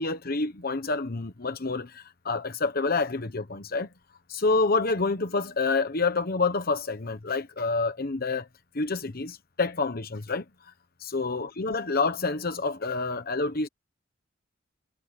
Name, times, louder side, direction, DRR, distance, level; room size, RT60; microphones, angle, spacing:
voice 1, 0.0-3.9 4.3-8.5 8.7-10.4 11.0-13.7, left 3 dB, 50° left, 1.2 m, -28 dB
head